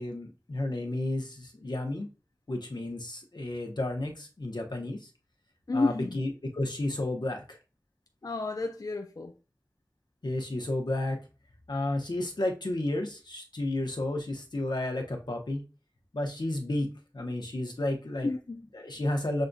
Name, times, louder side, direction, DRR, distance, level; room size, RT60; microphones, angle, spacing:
voice 1, 0.0-2.1 2.5-5.1 5.7-7.6 10.2-11.2 11.7-15.6 16.1-18.3 18.7-19.5, left 1 dB, 90° left, 0.9 m, -32 dB
voice 2, 5.7-6.2 8.2-9.3 18.2-18.6, left 3 dB, 55° left, 0.4 m, -30 dB
6.4 x 2.6 x 2.2 m
wide cardioid pair, 40°, 7 cm